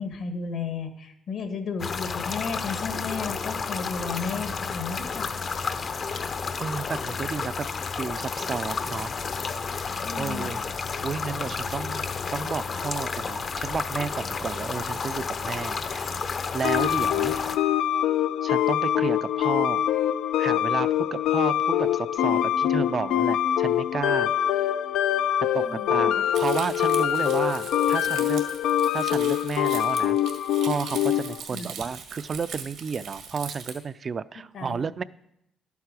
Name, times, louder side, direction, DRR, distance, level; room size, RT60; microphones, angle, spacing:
voice 1, 0.0-5.3 10.0-10.5 25.6-26.1 31.5-31.7 34.5-34.9, left 5 dB, 70° left, 7 dB, 1.4 m, -33 dB
sound 1, 1.8-17.6, left 5 dB, 50° left, 0.7 m, -31 dB
voice 2, 6.6-7.7 8.0-9.1 10.1-10.6 11.0-12.0 12.3-16.1 16.5-17.3 18.4-19.9 20.4-24.3 25.5-28.4 28.9-30.2 30.6-35.0, right 5 dB, 45° right, 16 dB, 0.4 m, -32 dB
sound 2, 16.6-31.4, left 11 dB, 85° left, 0.4 m, -24 dB
Crumpling crinkling, 26.3-33.8, right 6 dB, 90° right, 1.7 m, -40 dB
11.5 x 8.3 x 4.8 m, 0.79 s
cardioid pair, 90°, 0 cm